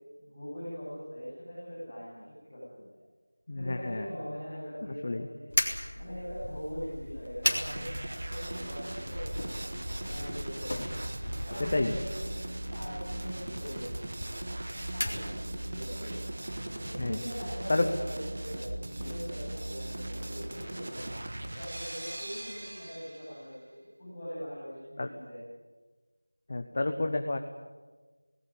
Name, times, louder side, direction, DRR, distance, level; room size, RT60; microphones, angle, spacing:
voice 1, 0.2-2.8 3.5-5.5 5.9-9.6 10.0-11.0 11.5-12.3 12.7-13.9 14.3-14.4 14.9-16.3 16.8-21.0 21.4-25.4, equal, 5° left, -22 dB, 7.7 m, -42 dB
voice 2, 3.5-4.1 5.0-5.3 11.6-11.9 17.0-17.2 17.7-17.9 19.0-19.1 25.0-25.1 26.5-27.4, left 2 dB, 20° left, 6 dB, 0.8 m, -29 dB
sound 1, 5.5-15.8, left 1 dB, 50° left, 3.4 m, -37 dB
sound 2, 7.4-23.4, right 1 dB, 35° right, 1.4 m, -38 dB
19.0 x 17.5 x 9.9 m, 1.3 s
figure-of-eight pair, 180°, 0 cm